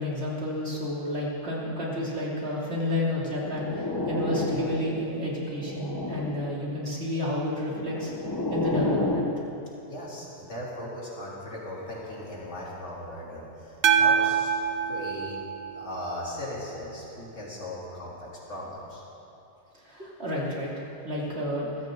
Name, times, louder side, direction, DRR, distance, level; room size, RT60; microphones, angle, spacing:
voice 1, 0.0-8.1 8.5-9.3 19.8-21.7, left 1 dB, 55° right, -5 dB, 3.3 m, -31 dB
sound 1, 3.3-5.1 5.5-6.6 7.5-9.4, left 2 dB, 20° left, 1.0 m, -30 dB
voice 2, 9.9-14.5 14.8-15.4 15.7-19.0, left 1 dB, 60° left, -6 dB, 3.7 m, -38 dB
sound 2, 13.8-16.2, right 7 dB, 85° right, 1.3 m, -25 dB
22.5 x 15.0 x 3.9 m, 2.9 s
omnidirectional pair, 1.3 m